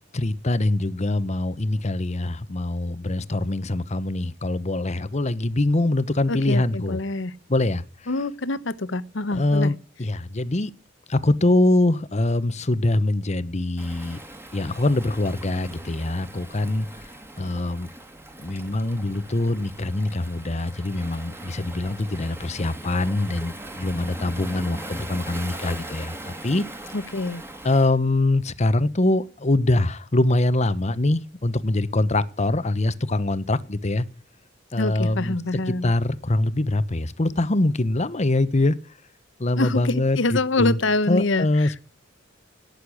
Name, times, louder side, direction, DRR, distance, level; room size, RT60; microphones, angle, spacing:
voice 1, 0.1-7.0 7.5-7.8 9.3-10.7 11.1-14.2 14.5-16.9 17.4-17.9 18.4-26.6 27.6-34.1 34.7-35.4 35.7-38.8 39.4-40.8 41.1-41.8, left 2 dB, 35° left, 0.9 m, -23 dB
voice 2, 6.3-7.3 8.1-9.7 26.9-27.4 34.8-35.9 39.6-41.7, left 2 dB, 65° left, 1.0 m, -25 dB
Waves surf, 13.8-27.9, right 1 dB, 15° right, 2.3 m, -40 dB
18.0 x 6.8 x 9.9 m
head